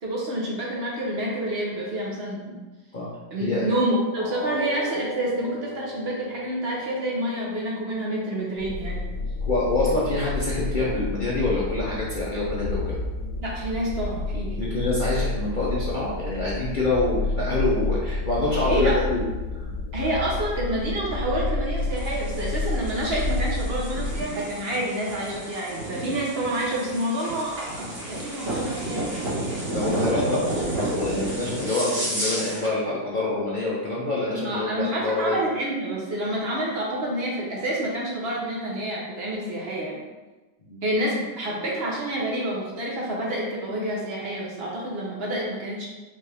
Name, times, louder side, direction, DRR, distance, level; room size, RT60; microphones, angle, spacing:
voice 1, 0.0-2.6 3.3-9.0 13.4-14.7 18.6-19.0 19.9-29.2 34.3-40.0 40.8-45.9, right 1 dB, 45° right, -3 dB, 0.8 m, -28 dB
sound 1, 4.2-10.1 10.5-10.7 11.2-11.3, left 1 dB, ahead, 1.1 m, -39 dB
sound 2, 8.6-24.2, left 2 dB, 90° left, 1.7 m, -29 dB
voice 2, 9.4-13.0 14.6-19.2 19.5-19.7 29.7-35.4 40.7-40.8, left 2 dB, 65° left, -7 dB, 0.4 m, -26 dB
sound 3, 21.8-32.7, right 1 dB, 75° right, 2.3 m, -31 dB
5.3 x 2.6 x 3.4 m, 1.2 s
omnidirectional pair, 1.8 m